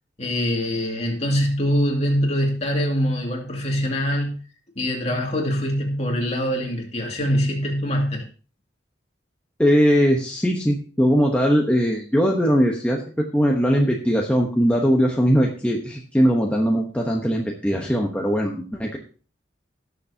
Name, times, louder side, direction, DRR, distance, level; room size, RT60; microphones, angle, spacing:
voice 1, 0.2-4.4 4.8-8.2, equal, 35° left, 0 dB, 2.4 m, -23 dB
voice 2, 9.6-19.0, equal, 5° left, -1 dB, 1.0 m, -20 dB
17.5 x 6.9 x 2.8 m, 0.37 s
head